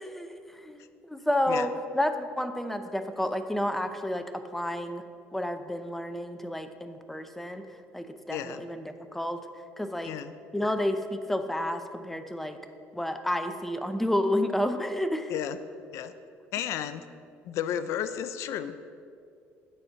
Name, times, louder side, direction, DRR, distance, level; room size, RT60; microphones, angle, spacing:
voice 1, 0.0-5.0 5.3-7.7 7.9-9.4 9.8-10.1 10.5-12.6 12.9-15.3, left 1 dB, 5° left, 8 dB, 0.6 m, -30 dB
voice 2, 8.3-8.6 10.0-10.3 15.3-15.6 15.9-16.1 16.5-17.1 17.4-18.8, left 10 dB, 70° left, 12 dB, 0.4 m, -33 dB
10.5 x 4.4 x 5.6 m, 2.4 s
supercardioid pair, 90°, 5 cm